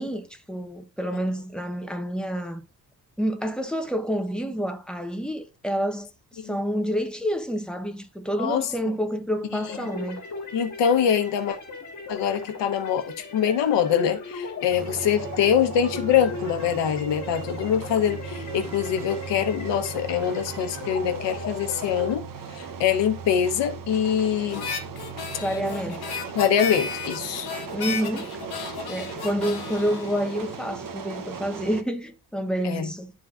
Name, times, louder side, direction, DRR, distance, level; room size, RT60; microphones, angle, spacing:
voice 1, 0.0-2.6 3.2-6.1 6.4-10.2 25.4-26.1 27.7-28.4 28.9-33.1, equal, ahead, 0.8 m, -28 dB
voice 2, 8.4-8.7 9.5-9.6 10.5-11.6 12.1-24.7 26.3-27.5 32.6-32.9, left 8 dB, 90° left, 0.9 m, -24 dB
sound 1, 9.6-22.1, left 4 dB, 40° left, 1.6 m, -38 dB
sound 2, 14.7-31.8, right 6 dB, 50° right, 0.9 m, -37 dB
Harmonica, 24.5-31.0, left 6 dB, 60° left, 1.2 m, -34 dB
11.0 x 3.8 x 2.4 m
cardioid pair, 110°, 42 cm